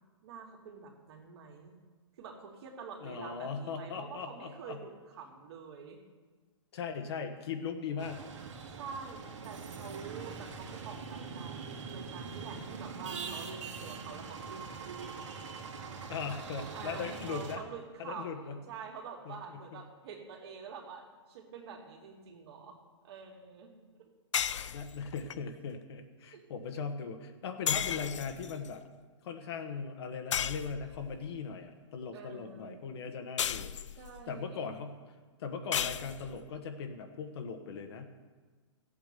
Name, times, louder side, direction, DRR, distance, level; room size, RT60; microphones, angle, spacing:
voice 1, 0.2-1.8 2.2-6.0 8.7-15.3 16.7-22.8 23.0-23.7 24.0-24.1 24.4-24.5 26.3-26.4 32.1-32.8 34.0-34.7, right 5 dB, 60° right, 1 dB, 2.7 m, -47 dB
voice 2, 3.0-4.8 6.7-8.3 16.1-17.6 18.0-18.6 19.2-19.8 24.7-28.8 29.2-33.7 34.3-35.0 35.4-38.1, left 5 dB, 60° left, 5 dB, 1.4 m, -39 dB
sound 1, 8.0-17.6, right 5 dB, 75° right, 2.3 m, -43 dB
sound 2, 24.3-25.4 27.7-28.7 30.3-31.2 33.4-34.2 35.7-36.5, left 9 dB, 85° left, 0.5 m, -34 dB
14.0 x 8.7 x 6.8 m, 1.4 s
hypercardioid pair, 150°, 15 cm